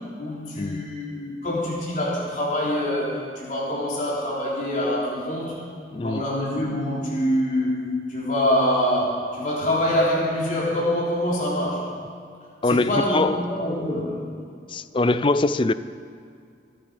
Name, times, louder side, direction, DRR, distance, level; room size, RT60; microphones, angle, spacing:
voice 1, 0.2-5.6 6.0-7.7 8.1-11.9 12.6-14.2, left 1 dB, 45° left, -6 dB, 3.6 m, -25 dB
voice 2, 5.9-6.2 12.6-13.4 14.7-15.7, left 2 dB, 30° left, 14 dB, 0.4 m, -22 dB
24.5 x 9.2 x 5.1 m, 2.4 s
head